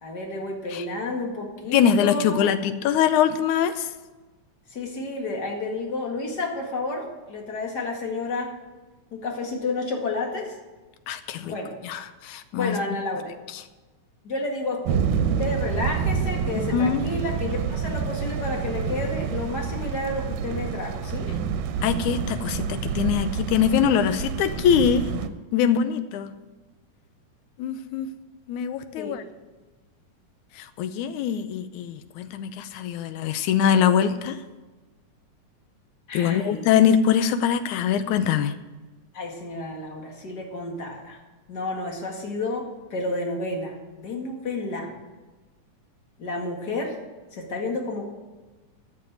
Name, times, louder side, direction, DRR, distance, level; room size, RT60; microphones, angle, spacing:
voice 1, 0.0-2.4 4.7-8.5 9.1-10.6 11.4-11.7 12.5-13.3 14.2-21.3 29.0-29.2 36.1-36.7 39.1-41.2 41.5-44.9 46.2-47.0 47.3-48.1, left 2 dB, 35° left, 1 dB, 2.2 m, -31 dB
voice 2, 1.7-3.9 11.1-11.5 11.8-12.8 16.7-17.0 21.8-25.1 25.5-26.3 27.6-28.1 28.5-29.2 30.6-34.4 36.1-38.5, left 8 dB, 80° left, 11 dB, 2.0 m, -23 dB
sound 1, 14.9-25.3, right 6 dB, 90° right, 2.4 m, -28 dB
13.0 x 6.5 x 9.3 m, 1.2 s
omnidirectional pair, 3.7 m